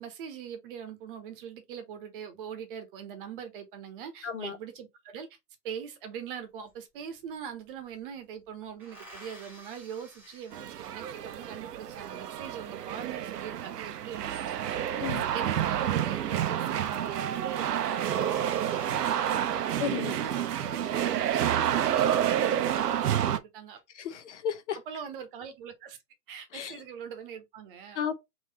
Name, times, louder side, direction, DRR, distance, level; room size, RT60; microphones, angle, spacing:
voice 1, 0.0-5.4 5.6-14.9 15.3-23.8 24.9-26.0 26.3-28.0, right 8 dB, 35° right, 1.0 m, -42 dB
voice 2, 4.2-4.6 15.0-15.3 19.8-20.2 23.9-24.8 26.5-26.8 27.9-28.1, left 8 dB, 45° left, 0.7 m, -33 dB
sound 1, 6.7-6.8 7.0-8.0 8.8-11.3 14.0-15.0 16.1-16.5 16.8-16.9 17.3-17.4 17.6-20.2 20.8-21.4, right 1 dB, 5° right, 1.2 m, -52 dB
sound 2, 10.5-23.4, right 10 dB, 70° right, 0.7 m, -29 dB
3.8 x 3.0 x 4.0 m
hypercardioid pair, 140°, 49 cm